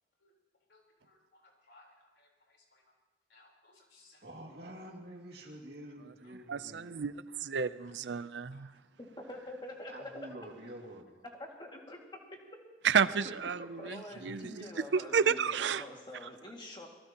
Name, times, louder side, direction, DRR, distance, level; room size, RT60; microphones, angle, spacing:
voice 1, 0.7-1.9 2.2-2.8 3.3-4.2 6.2-6.3 7.8-7.9 8.5-8.6 13.8-14.3, left 2 dB, 75° left, 0 dB, 4.1 m, -60 dB
voice 2, 4.2-7.1 9.9-11.2 13.1-13.8, right 1 dB, 65° right, 1 dB, 2.3 m, -48 dB
voice 3, 6.5-8.7 12.8-14.6 14.9-15.8, right 6 dB, 85° right, 15 dB, 0.5 m, -31 dB
voice 4, 9.0-10.1 11.4-12.0 13.8-16.9, left 1 dB, 25° left, 0 dB, 2.1 m, -46 dB
25.5 x 18.5 x 3.0 m, 1.2 s
head